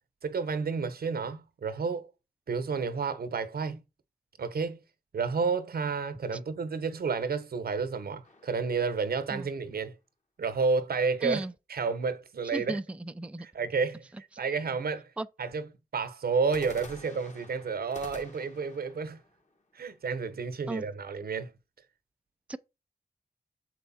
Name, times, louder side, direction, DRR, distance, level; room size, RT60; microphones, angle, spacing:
voice 1, 0.2-2.1 2.5-3.8 4.4-4.8 5.1-10.0 10.4-12.8 13.4-15.1 15.4-15.7 15.9-19.2 19.7-21.5, right 5 dB, 70° right, 1.0 m, -31 dB
sound 1, 8.2-9.7 16.4-20.4, left 2 dB, 50° left, 2.1 m, -50 dB
voice 2, 11.2-11.5 12.5-13.5 15.2-15.3 20.7-20.8 22.5-22.6, right 2 dB, 10° right, 0.5 m, -35 dB
6.7 x 4.5 x 4.2 m
cardioid pair, 65°, 16 cm